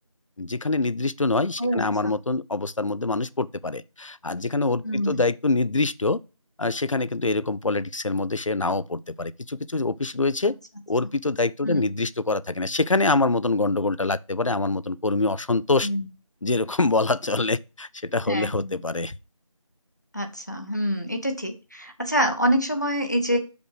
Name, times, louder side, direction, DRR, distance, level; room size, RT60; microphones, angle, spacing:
voice 1, 0.4-6.2 6.6-10.6 10.9-15.9 16.4-19.1, left 3 dB, 65° left, 0.6 m, -25 dB
voice 2, 1.6-2.1 4.8-5.2 11.6-11.8 15.8-16.1 18.3-18.7 20.1-23.4, equal, 30° left, 1.0 m, -26 dB
6.0 x 5.2 x 4.9 m
figure-of-eight pair, 180°, 18 cm